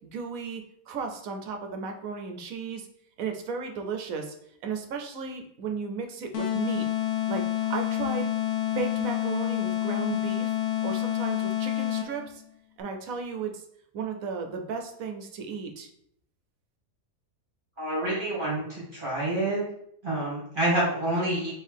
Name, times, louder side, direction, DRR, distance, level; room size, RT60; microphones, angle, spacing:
voice 1, 0.0-2.9 3.2-4.3 4.6-6.9 7.3-8.3 8.7-10.5 10.8-12.4 12.8-13.6 13.9-15.9, right 5 dB, 75° right, 4 dB, 1.1 m, -34 dB
sound 1, 6.3-12.3, left 12 dB, 65° left, 1.0 m, -28 dB
voice 2, 17.8-19.6 20.0-21.5, right 1 dB, 35° right, -8 dB, 1.9 m, -27 dB
4.5 x 3.2 x 3.4 m, 0.69 s
omnidirectional pair, 1.5 m